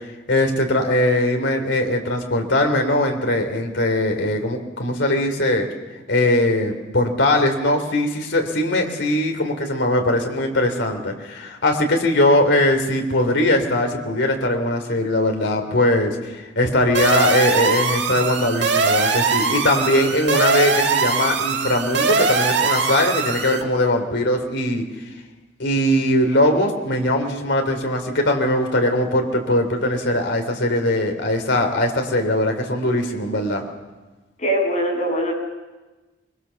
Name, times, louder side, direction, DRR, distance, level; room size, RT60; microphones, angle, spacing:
voice 1, 0.3-5.7 6.1-24.8 25.6-33.6, left 1 dB, 75° left, 4 dB, 3.4 m, -20 dB
sound 1, 16.9-23.6, right 4 dB, 65° right, 2.1 m, -21 dB
voice 2, 34.4-35.3, equal, 40° left, 0 dB, 7.8 m, -21 dB
24.0 x 23.0 x 7.1 m, 1.2 s
head